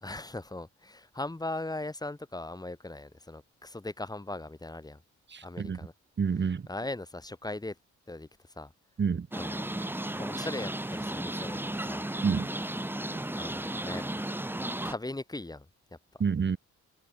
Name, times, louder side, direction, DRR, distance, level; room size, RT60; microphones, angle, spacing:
voice 1, 0.0-5.0 5.4-5.9 6.7-7.8 8.1-8.3 8.6-8.7 9.4-9.7 10.2-12.1 13.3-14.1 14.8-15.7 15.9-16.0, left 2 dB, 15° left, 3.9 m, -39 dB
voice 2, 5.3-5.8 6.2-6.7 9.0-9.3 12.2-12.5 16.2-16.6, right 6 dB, 35° right, 2.6 m, -28 dB
sound 1, 9.3-14.9, right 1 dB, 5° right, 2.9 m, -34 dB
cardioid pair, 90°, 30 cm